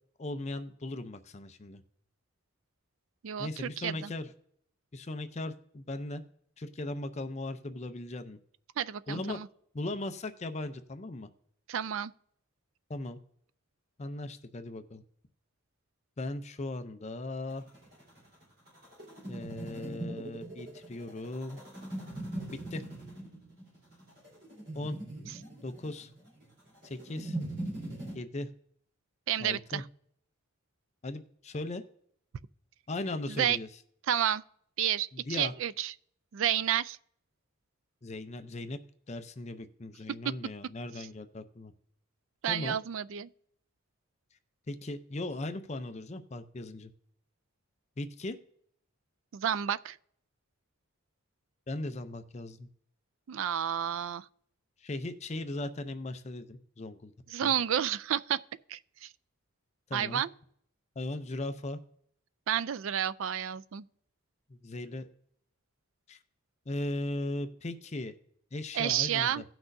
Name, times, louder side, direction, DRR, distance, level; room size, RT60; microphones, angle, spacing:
voice 1, 0.2-1.8 3.4-4.3 4.9-6.2 6.6-8.4 9.1-9.4 9.7-11.3 12.9-13.2 14.0-15.0 16.2-17.6 19.3-21.6 22.5-22.8 24.7-25.0 25.6-26.1 26.8-27.4 28.1-28.5 29.4-29.8 31.0-31.8 32.9-33.7 35.1-35.5 38.0-38.8 39.1-41.7 42.5-42.8 44.7-46.9 48.0-48.4 51.7-52.7 54.8-57.1 57.4-57.5 59.9-60.2 61.0-61.8 64.5-65.1 66.1-66.2 66.7-68.1 68.5-69.4, left 2 dB, 30° left, 0.5 m, -38 dB
voice 2, 3.2-4.1 8.8-9.5 11.7-12.1 29.3-29.8 33.3-33.6 34.1-34.4 34.8-35.9 36.3-37.0 42.4-43.3 49.3-50.0 53.3-54.3 57.3-58.4 58.7-59.1 59.9-60.3 62.5-63.8 68.7-69.4, right 10 dB, 65° right, 0.4 m, -30 dB
sound 1, 17.5-28.2, right 1 dB, 45° right, 4.2 m, -41 dB
17.0 x 6.0 x 2.6 m
head